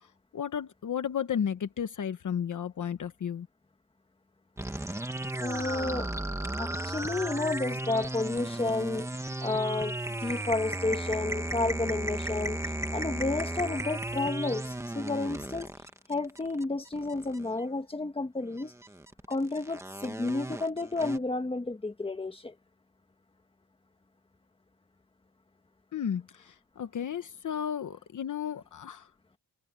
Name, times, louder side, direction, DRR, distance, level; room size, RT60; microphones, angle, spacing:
voice 1, 0.3-3.5 25.9-29.1, left 8 dB, 55° left, 1.1 m, -33 dB
sound 1, 4.6-17.6 18.6-21.2, right 1 dB, 10° right, 1.4 m, -35 dB
voice 2, 5.4-6.1 6.6-9.1 9.4-12.6 12.9-15.7 16.1-18.7 19.3-22.5, left 2 dB, 15° left, 1.6 m, -31 dB
wide cardioid pair, 160°, 37 cm